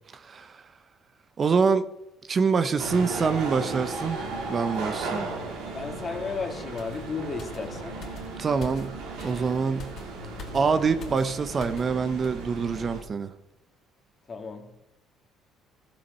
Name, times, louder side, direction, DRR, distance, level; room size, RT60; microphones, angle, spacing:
voice 1, 0.1-0.6 1.4-1.9 2.3-5.3 8.4-8.9 9.2-9.9 10.5-13.3, right 5 dB, 40° right, 0.7 m, -25 dB
sound 1, 2.8-13.0, right 3 dB, 85° right, 2.6 m, -36 dB
voice 2, 5.7-8.0 14.3-14.8, left 4 dB, 35° left, 2.0 m, -34 dB
sound 2, 6.8-12.0 12.2-12.4, left 3 dB, 55° left, 2.4 m, -45 dB
14.0 x 7.1 x 5.5 m
cardioid pair, 90°, 0 cm